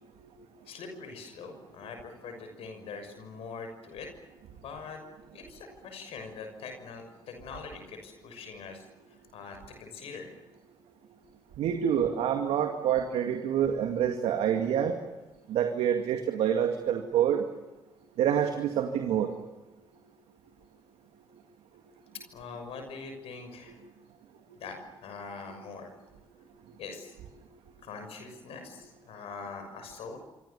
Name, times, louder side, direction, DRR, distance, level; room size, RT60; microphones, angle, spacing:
voice 1, 0.6-4.1 4.5-5.0 5.3-10.3 22.1-23.8 24.5-25.9 26.8-27.2 27.8-30.2, left 5 dB, 70° left, 5 dB, 6.3 m, -43 dB
voice 2, 11.6-14.9 15.5-17.4 18.2-19.3, right 9 dB, 70° right, 5 dB, 2.2 m, -27 dB
27.0 x 25.5 x 7.1 m, 1.1 s
hypercardioid pair, 50°, 11 cm